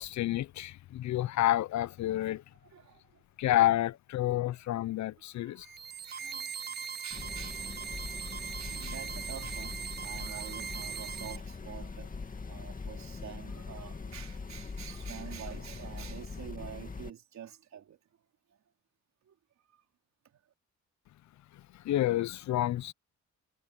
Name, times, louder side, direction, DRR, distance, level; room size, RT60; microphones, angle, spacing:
voice 1, 0.0-2.4 3.4-5.7 21.5-22.9, left 14 dB, 65° left, 0.7 m, -29 dB
voice 2, 2.5-3.5 4.3-4.5 5.1-5.7 6.1-12.1 12.5-18.0 19.3-19.4, right 9 dB, 65° right, 4.5 m, -48 dB
sound 1, 5.6-11.4, right 7 dB, 35° right, 0.8 m, -40 dB
sound 2, 7.1-17.1, left 4 dB, 25° left, 2.2 m, -42 dB
cardioid pair, 90°, 30 cm